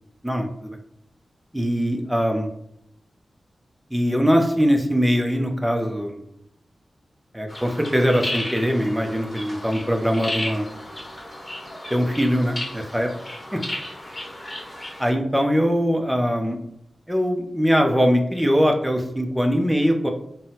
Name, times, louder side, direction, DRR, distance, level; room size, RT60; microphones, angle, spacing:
voice 1, 0.2-0.8 1.5-2.5 3.9-6.2 7.3-10.7 11.9-13.1 13.5-13.6 15.0-16.6 17.1-20.1, equal, 5° right, 3 dB, 0.5 m, -21 dB
sound 1, 7.5-15.1, left 1 dB, 30° left, 1.0 m, -34 dB
3.8 x 2.0 x 2.7 m, 0.77 s
cardioid pair, 50°, 0 cm